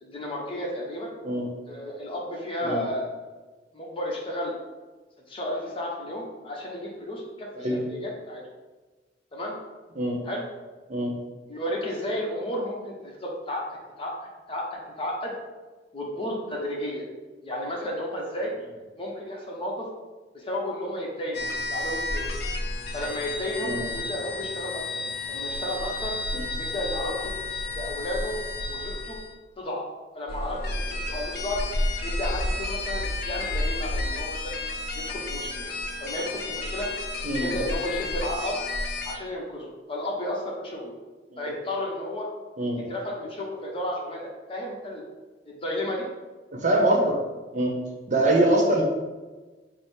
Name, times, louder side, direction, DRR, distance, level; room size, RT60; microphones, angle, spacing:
voice 1, 0.0-1.1 1.7-3.1 3.7-4.6 5.3-8.4 9.3-9.6 10.2-10.4 11.5-13.6 14.0-14.1 14.5-15.3 15.9-17.1 17.4-18.5 19.0-19.9 20.3-22.3 22.9-26.1 26.6-27.4 27.8-28.4 28.7-29.2 29.6-29.9 30.1-31.6 32.0-34.6 34.9-36.9 37.4-38.6 39.1-40.9 41.4-42.3 42.9-44.2 44.5-45.0 45.5-46.1, left 1 dB, 30° left, -2 dB, 0.8 m, -32 dB
sound 1, 21.3-29.3 30.3-39.2, left 2 dB, 60° left, 0.5 m, -31 dB
voice 2, 37.2-37.5 41.3-41.4 42.6-42.8 46.5-47.2 47.5-47.7 48.1-48.8, right 1 dB, 45° right, -1 dB, 0.8 m, -23 dB
5.0 x 2.0 x 4.4 m, 1.3 s
head